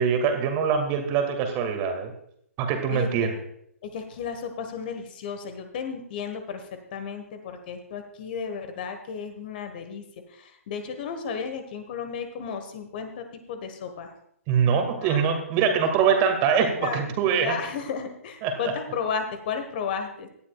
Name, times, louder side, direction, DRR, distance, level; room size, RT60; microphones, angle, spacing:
voice 1, 0.0-2.1 2.6-3.3 14.5-17.5 18.4-18.5, right 7 dB, 25° right, 5 dB, 2.1 m, -23 dB
voice 2, 2.9-3.4 3.8-14.1 15.0-15.3 16.2-16.3 16.8-20.3, left 6 dB, 40° left, 7 dB, 1.4 m, -34 dB
17.5 x 12.5 x 2.4 m, 0.70 s
figure-of-eight pair, 125°, 8 cm